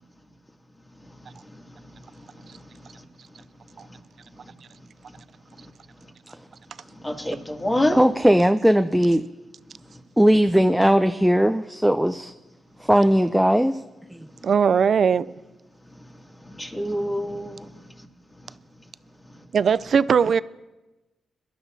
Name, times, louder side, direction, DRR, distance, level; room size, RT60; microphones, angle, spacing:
voice 1, 7.0-8.0 16.6-17.6, left 1 dB, 20° left, 2.4 m, -26 dB
voice 2, 7.9-9.2 10.2-12.3 12.8-13.8, equal, 5° right, 0.6 m, -18 dB
voice 3, 14.4-15.3 19.5-20.4, right 6 dB, 65° right, 0.4 m, -19 dB
22.5 x 12.0 x 2.7 m
supercardioid pair, 45°, 0 cm